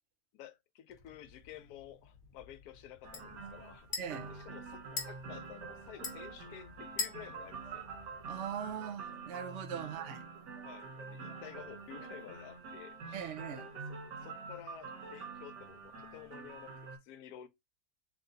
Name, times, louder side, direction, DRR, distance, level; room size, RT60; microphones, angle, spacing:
voice 1, 0.3-3.9 4.3-7.9 9.8-10.2 10.6-13.3 13.9-17.5, left 11 dB, 70° left, 1.1 m, -52 dB
sound 1, 0.9-8.7, left 4 dB, 40° left, 0.9 m, -46 dB
sound 2, 3.0-17.0, right 4 dB, 80° right, 1.7 m, -46 dB
sound 3, 3.4-6.6 6.9-7.2 7.5-12.3, right 6 dB, 45° right, 1.3 m, -61 dB
voice 2, 4.0-4.3 8.3-10.2 13.1-13.7, right 8 dB, 65° right, 0.7 m, -40 dB
3.4 x 2.6 x 3.8 m
omnidirectional pair, 1.8 m